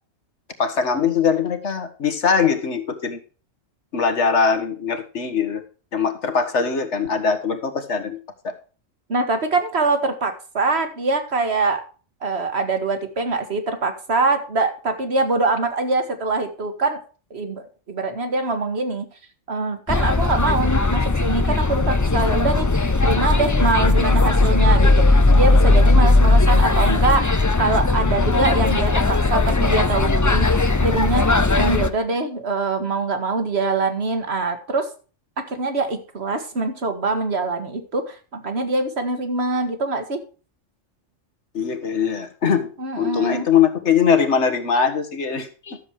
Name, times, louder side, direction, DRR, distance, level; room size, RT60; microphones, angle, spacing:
voice 1, 0.6-3.2 3.9-5.6 5.9-8.2 8.4-8.5 41.5-42.7 43.0-45.8, left 6 dB, 60° left, 7 dB, 1.8 m, -21 dB
voice 2, 9.1-11.8 12.2-17.0 17.3-19.1 19.5-34.9 35.4-40.2 42.8-43.5, right 3 dB, 55° right, 7 dB, 1.9 m, -24 dB
sound 1, 19.9-31.9, left 2 dB, 25° left, 0.4 m, -17 dB
12.5 x 7.3 x 4.8 m, 0.37 s
omnidirectional pair, 1.4 m